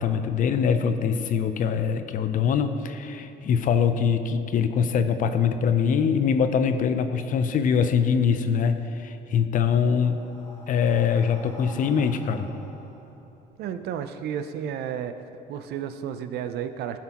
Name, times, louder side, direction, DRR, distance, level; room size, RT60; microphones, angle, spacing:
voice 1, 0.0-10.2 10.7-12.5, left 6 dB, 50° left, 9 dB, 0.6 m, -23 dB
Breathing, 9.3-14.0, equal, 25° left, 1.7 m, -48 dB
voice 2, 13.6-15.1 15.5-17.0, right 9 dB, 75° right, 9 dB, 0.5 m, -32 dB
14.5 x 5.9 x 3.0 m, 2.9 s
cardioid pair, 110°, 17 cm